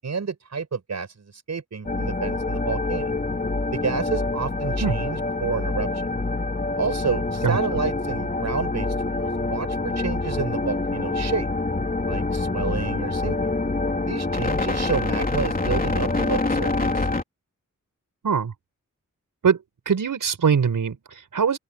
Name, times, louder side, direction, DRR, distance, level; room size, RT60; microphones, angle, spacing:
voice 1, 0.0-3.1 3.7-5.9 6.8-11.5 12.1-13.4 14.1-17.1, right 5 dB, 60° right, 6.1 m, -30 dB
sound 1, 1.8-17.2, left 3 dB, 30° left, 3.4 m, -26 dB
voice 2, 19.9-21.6, right 6 dB, 85° right, 5.3 m, -22 dB
open air
wide cardioid pair, 135°, 31 cm